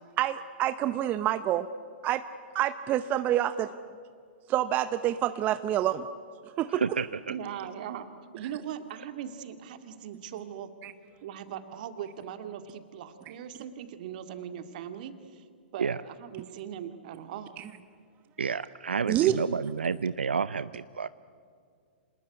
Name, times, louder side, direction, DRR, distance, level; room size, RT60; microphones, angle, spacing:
voice 1, 0.2-1.7 2.0-2.3 2.5-3.7 4.5-6.1 6.6-6.8 10.8-10.9 17.6-17.7 19.1-19.4, right 12 dB, 30° right, 12 dB, 0.8 m, -27 dB
voice 2, 6.7-7.3 15.8-16.0 18.4-21.1, right 5 dB, 80° right, 16 dB, 0.5 m, -30 dB
voice 3, 7.3-8.1 8.3-10.7 11.2-15.4 15.7-17.5, right 9 dB, 50° right, 9 dB, 2.1 m, -40 dB
26.5 x 19.5 x 9.6 m, 2.2 s
hypercardioid pair, 115°, 6 cm